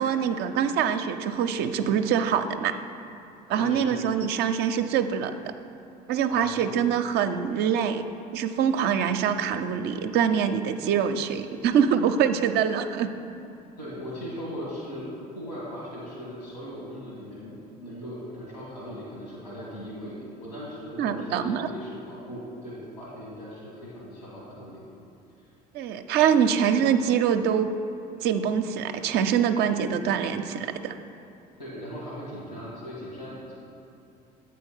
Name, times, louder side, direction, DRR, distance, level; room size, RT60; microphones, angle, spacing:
voice 1, 0.0-2.8 3.5-5.3 6.1-8.0 8.3-13.1 21.0-21.7 25.7-27.7 28.2-31.0, right 8 dB, 55° right, 8 dB, 0.5 m, -24 dB
voice 2, 3.5-4.0 6.3-6.8 13.8-24.9 25.4-25.5 31.6-33.5, equal, 85° left, -5 dB, 1.8 m, -39 dB
8.1 x 4.2 x 5.5 m, 2.9 s
hypercardioid pair, 65°, 21 cm